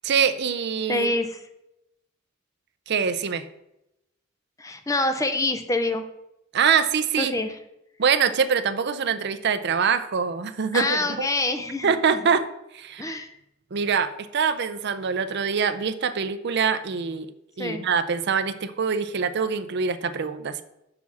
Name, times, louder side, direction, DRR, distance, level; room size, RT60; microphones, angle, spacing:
voice 1, 0.0-1.1 2.9-3.4 6.5-7.3 8.0-11.3 11.8-12.5 12.7-13.2 13.7-17.3 17.6-20.6, right 6 dB, 55° right, 12 dB, 0.5 m, -24 dB
voice 2, 0.9-1.4 4.6-6.0 7.2-7.5 10.7-11.9 13.0-13.3 17.6-17.8, left 2 dB, 15° left, 8 dB, 0.6 m, -26 dB
6.7 x 4.1 x 6.0 m, 0.85 s
head